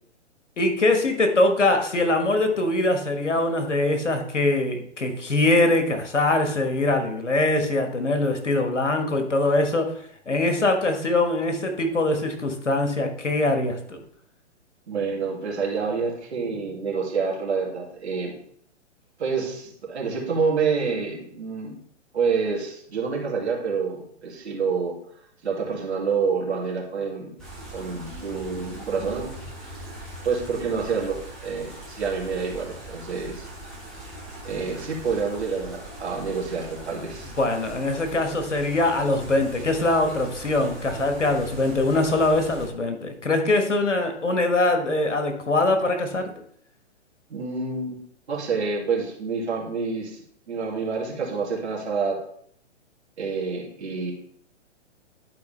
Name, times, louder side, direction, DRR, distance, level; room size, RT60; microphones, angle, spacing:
voice 1, 0.6-9.9 10.3-14.0 37.4-46.3, left 2 dB, 85° left, 5 dB, 1.5 m, -23 dB
voice 2, 14.9-18.3 19.2-21.7 22.1-24.9 25.4-27.3 27.7-29.3 29.6-29.8 30.2-33.5 34.4-37.3 47.3-48.0 48.3-52.2 53.2-54.1, right 5 dB, 65° right, -2 dB, 2.6 m, -28 dB
sound 1, 27.4-42.7, right 1 dB, ahead, 0.3 m, -41 dB
11.0 x 4.7 x 3.3 m, 0.63 s
figure-of-eight pair, 120°, 36 cm